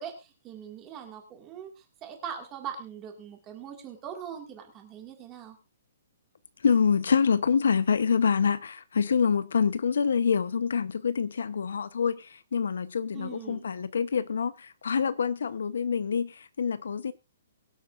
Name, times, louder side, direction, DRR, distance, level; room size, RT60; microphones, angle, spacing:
voice 1, 0.0-5.6 13.1-13.6, right 8 dB, 15° right, 2.0 m, -41 dB
voice 2, 6.6-17.1, left 6 dB, 85° left, 0.9 m, -26 dB
23.0 x 8.3 x 2.5 m
hypercardioid pair, 180°, 0 cm